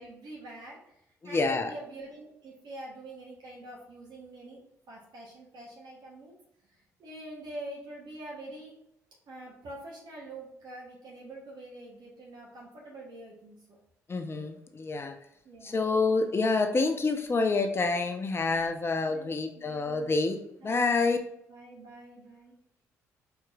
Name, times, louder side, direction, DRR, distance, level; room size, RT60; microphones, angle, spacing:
voice 1, 0.0-4.6 4.9-6.4 7.0-8.7 9.3-13.8 15.4-15.8 19.1-20.2 20.6-21.2 21.5-22.5, right 1 dB, 55° right, -4 dB, 1.0 m, -45 dB
voice 2, 1.2-1.7 14.1-15.1 15.6-21.2, left 3 dB, 30° left, 6 dB, 0.6 m, -27 dB
4.4 x 3.0 x 2.3 m, 0.79 s
figure-of-eight pair, 45°, 8 cm